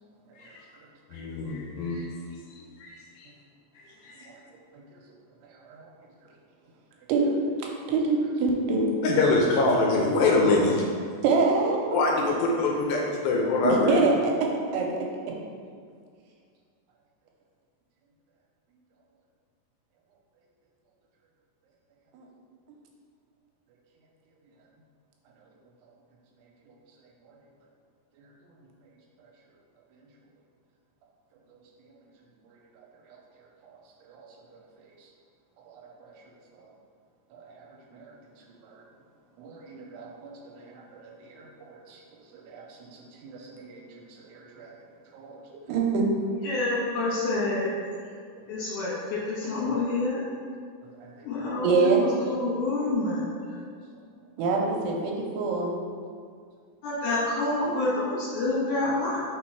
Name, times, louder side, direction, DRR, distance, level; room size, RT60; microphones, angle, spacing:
voice 1, 1.1-2.1 2.5-3.3 3.8-4.3 9.0-10.8 11.9-14.0, left 3 dB, 80° left, -1 dB, 2.2 m, -24 dB
voice 2, 7.9-8.9 11.2-12.0 13.6-14.3 14.7-15.0 22.1-22.3 31.5-31.6 34.1-34.3 36.0-36.1 37.3-37.5 37.9-38.1 38.6-38.7 39.4-42.0 42.3-43.8 44.2-44.7 45.1-45.4 45.7-46.1 50.8-51.1 51.4-52.0 54.4-55.7, right 4 dB, 85° right, 0 dB, 2.8 m, -27 dB
voice 3, 46.4-47.7 48.0-48.1 48.5-50.2 51.2-53.6 56.8-59.2, left 2 dB, 60° left, -9 dB, 2.6 m, -28 dB
5.8 x 4.3 x 4.6 m, 2.1 s
omnidirectional pair, 4.7 m